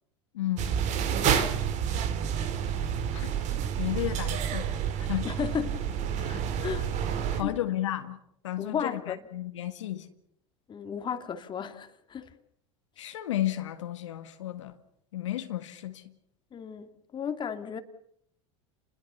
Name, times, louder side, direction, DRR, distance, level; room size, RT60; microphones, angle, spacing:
voice 1, 0.3-0.7 3.1-3.3 3.8-5.3 6.3-6.4 7.4-8.2 8.4-10.1 13.0-14.8 15.1-16.1, left 13 dB, 80° left, 1.8 m, -33 dB
sound 1, 0.6-7.4, right 8 dB, 50° right, 3.2 m, -29 dB
voice 2, 1.2-1.6 5.2-5.9 6.2-6.3 6.6-6.9 7.3-7.6 8.6-9.2 10.7-12.3 16.5-17.8, left 7 dB, 30° left, 2.6 m, -34 dB
29.5 x 21.0 x 6.9 m
hypercardioid pair, 90°, 16 cm